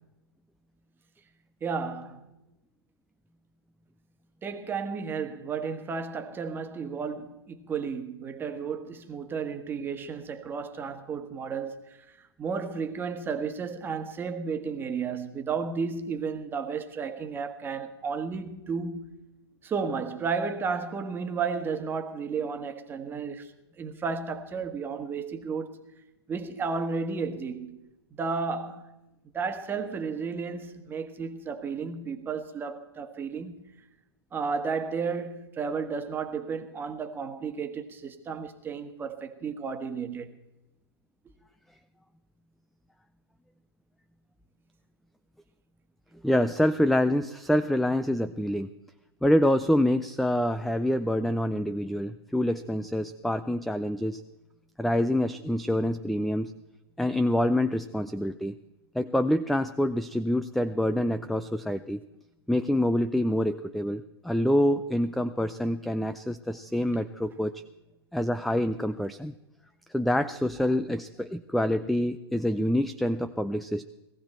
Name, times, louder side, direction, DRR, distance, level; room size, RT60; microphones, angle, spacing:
voice 1, 1.6-2.2 4.4-19.1 19.6-23.5 23.8-25.8 26.3-27.8 28.2-28.9 29.3-33.5 34.3-40.4, right 5 dB, 15° right, 1.5 m, -33 dB
voice 2, 46.2-48.7 49.2-54.2 54.8-56.5 57.0-58.5 58.9-62.0 62.5-67.6 68.1-69.3 69.9-73.9, left 1 dB, ahead, 0.4 m, -26 dB
18.5 x 15.5 x 4.4 m
hypercardioid pair, 125°, 13 cm